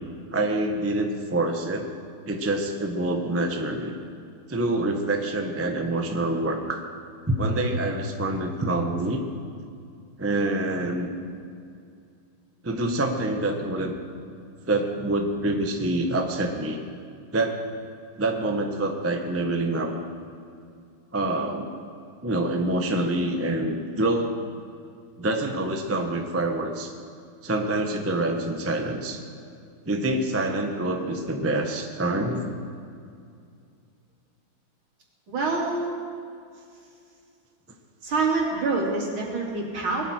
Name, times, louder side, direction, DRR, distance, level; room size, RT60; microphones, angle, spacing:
voice 1, 0.3-1.9 2.2-3.9 4.5-6.8 7.3-9.2 10.2-11.1 12.6-13.9 14.7-16.8 17.3-17.6 18.2-19.9 21.1-21.7 22.2-24.4 25.2-26.9 27.4-29.2 29.9-32.5, right 2 dB, 10° right, 3 dB, 0.6 m, -26 dB
voice 2, 35.3-35.9 38.0-40.0, right 3 dB, 75° right, -3 dB, 3.7 m, -26 dB
20.0 x 13.5 x 4.4 m, 2.4 s
omnidirectional pair, 2.3 m